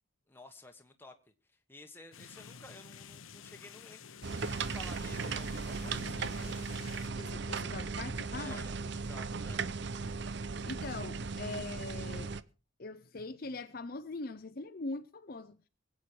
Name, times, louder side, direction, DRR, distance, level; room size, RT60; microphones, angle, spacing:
voice 1, 0.3-1.1 1.5-4.0 4.3-6.4 8.3-9.6, left 2 dB, 10° left, 1.4 m, -53 dB
sound 1, 2.1-7.1, left 6 dB, 80° left, 0.9 m, -50 dB
sound 2, 4.2-12.4, right 4 dB, 55° right, 0.6 m, -37 dB
voice 2, 7.2-8.6 10.6-12.3 12.8-15.6, left 3 dB, 45° left, 0.7 m, -42 dB
23.5 x 8.5 x 4.5 m
head